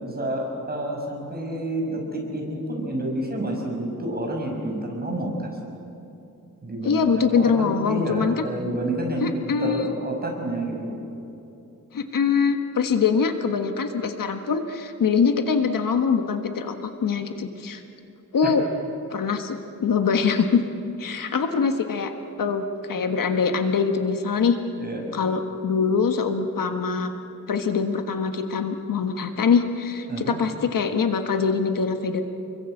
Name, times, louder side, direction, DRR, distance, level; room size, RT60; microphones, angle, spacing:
voice 1, 0.0-5.6 6.6-11.0 18.4-18.5 24.7-25.1 30.1-30.4, right 1 dB, 30° right, 0 dB, 5.9 m, -29 dB
voice 2, 6.8-8.4 9.2-9.9 11.9-17.8 18.3-18.7 19.1-20.6 21.0-22.1 22.4-24.5 25.1-27.1 27.5-32.2, left 5 dB, 75° left, 6 dB, 1.5 m, -23 dB
29.5 x 22.5 x 7.9 m, 2.9 s
wide cardioid pair, 145°, 33 cm